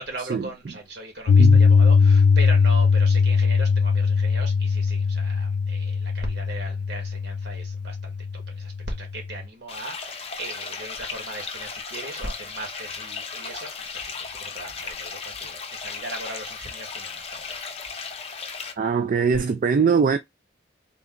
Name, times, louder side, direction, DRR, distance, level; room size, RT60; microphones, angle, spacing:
voice 1, 0.0-8.2 8.5-17.7, right 2 dB, 65° right, 1.6 m, -38 dB
Piano, 1.3-9.4, left 5 dB, 65° left, 0.3 m, -20 dB
sound 1, 9.7-18.7, left 5 dB, 35° left, 0.7 m, -36 dB
voice 2, 18.8-20.2, right 5 dB, 45° right, 0.3 m, -21 dB
3.8 x 2.3 x 3.7 m
head